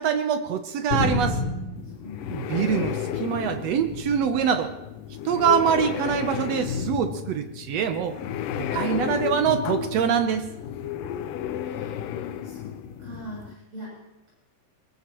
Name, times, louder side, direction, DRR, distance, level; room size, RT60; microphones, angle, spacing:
voice 1, 0.0-1.4 2.3-4.7 5.2-8.2 8.5-10.4, right 7 dB, 70° right, 8 dB, 1.6 m, -24 dB
sound 1, 0.9-3.1 3.5-4.4 5.3-5.7 6.7-6.8, left 1 dB, 25° left, 4.8 m, -31 dB
sound 2, 1.8-13.5, left 9 dB, 85° left, 2.3 m, -32 dB
voice 2, 1.8-2.6 11.3-14.3, equal, 50° right, -7 dB, 8.9 m, -44 dB
22.5 x 20.5 x 3.0 m, 0.99 s
omnidirectional pair, 3.7 m